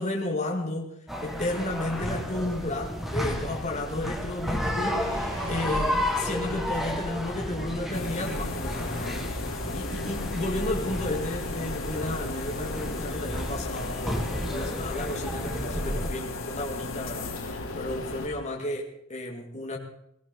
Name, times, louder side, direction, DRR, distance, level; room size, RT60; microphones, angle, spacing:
voice 1, 0.0-0.9 1.2-9.2 9.4-19.8, left 1 dB, 35° left, 0 dB, 2.0 m, -33 dB
sound 1, 1.1-16.1, equal, ahead, 1.9 m, -32 dB
sound 2, 4.5-8.8, equal, 70° right, 7.2 m, -42 dB
sound 3, 7.9-18.3, left 3 dB, 85° left, 3.1 m, -35 dB
19.0 x 17.0 x 4.0 m, 0.75 s
head